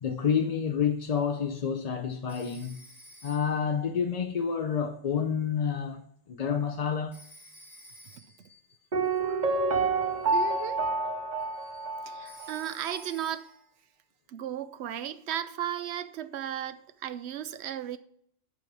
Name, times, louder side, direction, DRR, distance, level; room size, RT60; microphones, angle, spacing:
voice 1, 0.0-2.8 3.2-6.0 6.3-7.2 8.5-8.6 11.5-11.9 12.2-12.4, left 7 dB, 45° left, 0.6 m, -29 dB
Telephone, 2.3-3.7 7.1-8.5 12.3-13.7, equal, ahead, 3.8 m, -52 dB
Piano, 8.9-12.7 12.9-13.0, right 3 dB, 45° right, 1.0 m, -28 dB
voice 2, 10.3-10.9 12.1-13.5 14.3-18.0, right 10 dB, 85° right, 0.9 m, -35 dB
8.3 x 5.3 x 6.0 m
omnidirectional pair, 1.1 m